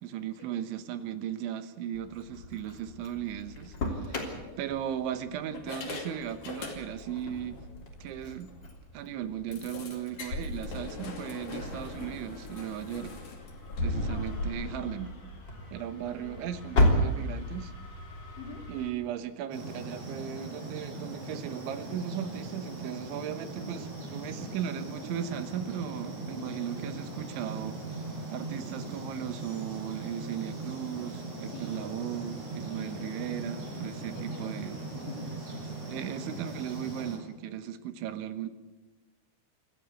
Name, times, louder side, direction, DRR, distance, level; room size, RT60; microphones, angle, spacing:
voice 1, 0.0-7.6 8.0-8.5 8.9-13.2 13.8-15.1 15.7-17.7 18.7-27.8 28.3-34.8 35.9-38.5, right 10 dB, 80° right, 11 dB, 3.5 m, -37 dB
Engine starting, 1.9-18.9, left 1 dB, 25° left, 3.2 m, -35 dB
sound 1, 3.5-3.7 4.4-5.1 5.5-7.2 7.5-7.7 8.1-8.2 8.5-8.6 9.5-14.5, left 2 dB, 45° left, 3.8 m, -39 dB
voice 2, 4.1-4.6 14.0-15.0 15.9-16.5 18.4-18.7 26.2-26.6 31.5-32.0 32.7-33.1 34.1-35.4, left 4 dB, 70° left, 3 dB, 5.0 m, -47 dB
sound 2, 19.5-37.2, right 2 dB, 30° right, 6.3 m, -40 dB
25.5 x 15.0 x 8.5 m, 1.1 s
omnidirectional pair, 5.4 m